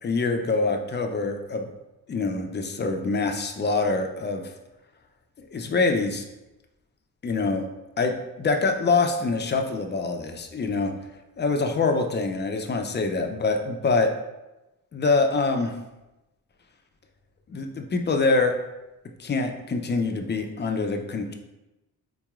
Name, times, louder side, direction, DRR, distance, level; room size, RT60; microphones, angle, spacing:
voice 1, 0.0-1.7 2.1-4.4 5.5-6.2 7.2-7.7 8.0-10.9 11.4-14.1 14.9-15.7 17.5-18.5 19.2-21.3, left 3 dB, 30° left, 4 dB, 0.4 m, -25 dB
3.9 x 2.9 x 2.3 m, 1.0 s
cardioid pair, 80°, 38 cm